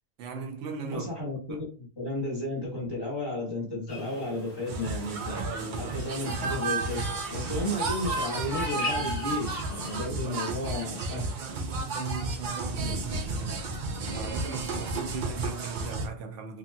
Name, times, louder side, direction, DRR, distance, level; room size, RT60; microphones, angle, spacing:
voice 1, 0.2-1.1 1.5-1.7 5.3-6.3 7.5-7.7 10.1-13.8 14.1-16.6, right 5 dB, 80° right, 0.9 m, -39 dB
voice 2, 0.9-5.4 5.8-7.0 7.3-11.3, left 1 dB, 20° left, 1.0 m, -33 dB
sound 1, 3.9-10.0, left 2 dB, 65° left, 1.2 m, -41 dB
sound 2, 4.7-16.1, right 3 dB, 55° right, 0.6 m, -32 dB
3.1 x 2.7 x 2.2 m
omnidirectional pair, 1.2 m